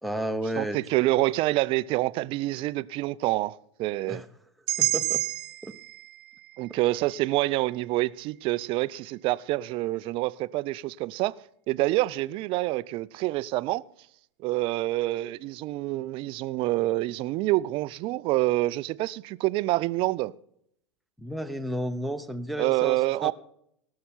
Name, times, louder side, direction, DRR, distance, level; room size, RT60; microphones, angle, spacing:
voice 1, 0.0-0.8 4.1-4.3 4.8-5.3 5.6-5.8 6.7-6.8 21.2-23.3, right 1 dB, ahead, 0.8 m, -32 dB
voice 2, 0.6-4.2 6.6-11.4 11.7-13.8 14.4-20.3 22.6-23.3, right 18 dB, 35° right, 0.4 m, -27 dB
sound 1, 4.7-8.7, right 18 dB, 50° right, 0.8 m, -32 dB
18.0 x 6.6 x 5.8 m
figure-of-eight pair, 90°, 16 cm